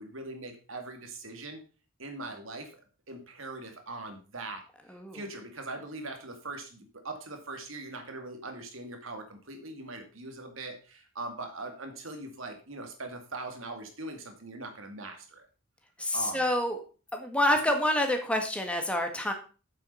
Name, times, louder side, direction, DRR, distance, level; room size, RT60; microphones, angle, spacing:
voice 1, 0.0-1.6 2.0-2.7 3.1-4.6 5.1-15.5 16.1-16.5, right 2 dB, 80° right, 4 dB, 2.5 m, -41 dB
voice 2, 16.0-16.8 17.1-19.3, left 1 dB, 5° left, 4 dB, 1.6 m, -27 dB
8.4 x 7.5 x 5.5 m, 0.36 s
head